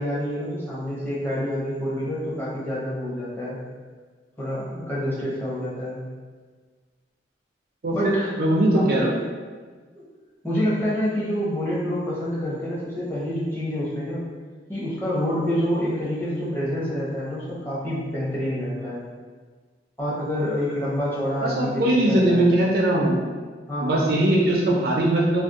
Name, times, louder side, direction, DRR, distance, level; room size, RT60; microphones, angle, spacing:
voice 1, 0.0-3.6 4.4-6.0 7.9-8.4 8.7-8.9 9.9-10.0 10.4-14.3 14.7-19.0 20.0-22.5 23.7-24.1, equal, 10° left, -9 dB, 0.8 m, -27 dB
voice 2, 7.8-9.1 21.4-23.2 23.8-25.4, right 1 dB, 55° right, -3 dB, 0.5 m, -20 dB
2.5 x 2.1 x 3.5 m, 1.5 s
head